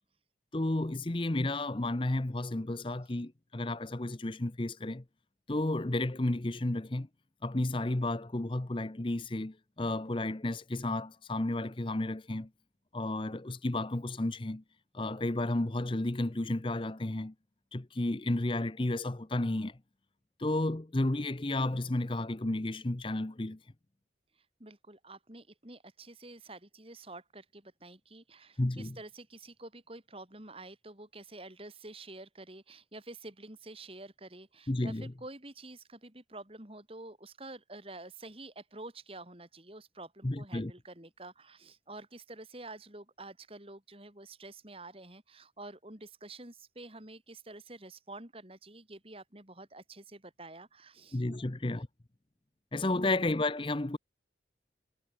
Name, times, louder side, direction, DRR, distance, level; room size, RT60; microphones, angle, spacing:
voice 1, 0.5-5.0 5.5-7.1 7.4-12.5 12.9-14.6 14.9-17.3 17.7-19.8 20.4-23.6 28.6-29.0 34.7-35.1 40.2-40.7 51.1-51.9 52.7-54.0, left 2 dB, 30° left, 0.8 m, -32 dB
voice 2, 24.4-51.5 52.9-53.2, right 2 dB, 30° right, 3.6 m, -48 dB
head